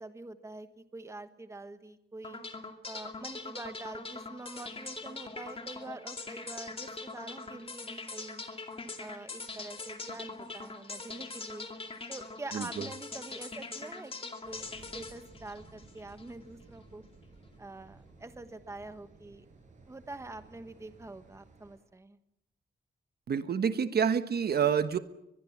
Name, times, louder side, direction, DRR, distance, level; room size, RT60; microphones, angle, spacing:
voice 1, 0.0-2.4 2.9-8.4 9.0-11.7 12.1-17.0 17.6-19.4 19.9-22.2, right 2 dB, 15° right, 9 dB, 1.3 m, -45 dB
sound 1, 2.2-16.3, left 3 dB, 30° left, 2.4 m, -42 dB
voice 2, 12.5-12.8 23.3-25.0, right 7 dB, 60° right, 10 dB, 1.3 m, -28 dB
sound 2, 14.4-21.8, right 3 dB, 45° right, 7.9 m, -56 dB
23.5 x 21.5 x 7.4 m, 0.83 s
wide cardioid pair, 165°, 18 cm